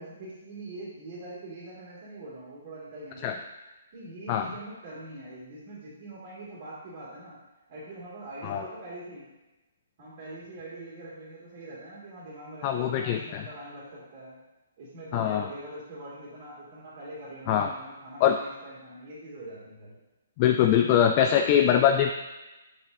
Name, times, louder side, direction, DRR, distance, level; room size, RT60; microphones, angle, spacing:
voice 1, 0.0-3.3 3.9-7.4 7.7-9.3 10.0-14.4 14.8-20.0, right 1 dB, 45° right, -7 dB, 2.2 m, -43 dB
voice 2, 12.6-13.4 15.1-15.5 17.5-17.7 18.2-18.4 20.4-22.1, left 9 dB, 35° left, 5 dB, 0.3 m, -22 dB
6.8 x 5.3 x 2.7 m, 1.1 s
figure-of-eight pair, 135°, 0 cm